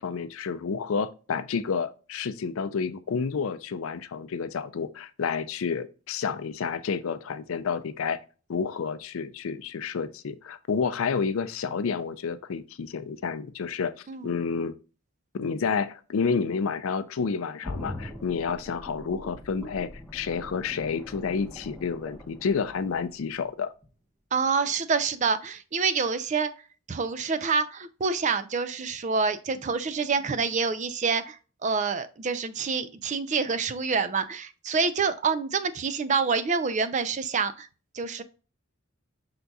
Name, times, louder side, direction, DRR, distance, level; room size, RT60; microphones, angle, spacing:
voice 1, 0.0-8.2 8.5-13.9 14.2-14.8 15.3-23.7, left 5 dB, 70° left, 0.4 m, -30 dB
sound 1, 17.6-23.4 23.8-23.9, left 1 dB, 5° left, 0.9 m, -42 dB
voice 2, 24.3-26.5 26.9-37.7 37.9-38.2, right 5 dB, 35° right, 0.4 m, -27 dB
5.8 x 3.9 x 2.3 m
head